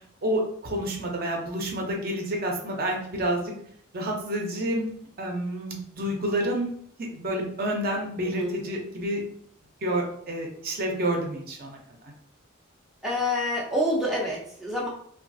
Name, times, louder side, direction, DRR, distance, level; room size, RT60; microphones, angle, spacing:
voice 1, 0.2-3.5 3.9-4.9 5.2-6.7 7.1-9.2 9.8-11.8, right 1 dB, 45° right, 0 dB, 0.6 m, -29 dB
voice 2, 13.0-14.9, left 1 dB, ahead, -5 dB, 0.5 m, -27 dB
3.0 x 2.3 x 2.6 m, 0.65 s
head